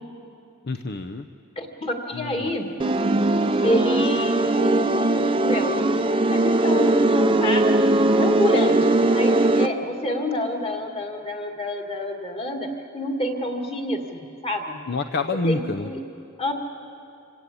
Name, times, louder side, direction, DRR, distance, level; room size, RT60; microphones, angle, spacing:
voice 1, 0.6-1.3 2.1-2.5 14.9-15.9, left 3 dB, 50° left, 7 dB, 0.7 m, -27 dB
voice 2, 1.6-2.7 3.6-4.8 5.1-5.9 6.3-7.8 8.1-14.8 15.5-16.0 16.4-16.5, left 1 dB, 25° left, 3 dB, 2.1 m, -28 dB
sound 1, 2.5-5.9, left 5 dB, 75° left, 3.5 m, -43 dB
sound 2, 2.8-9.7, right 2 dB, 25° right, 0.7 m, -20 dB
27.0 x 17.5 x 8.5 m, 2.6 s
head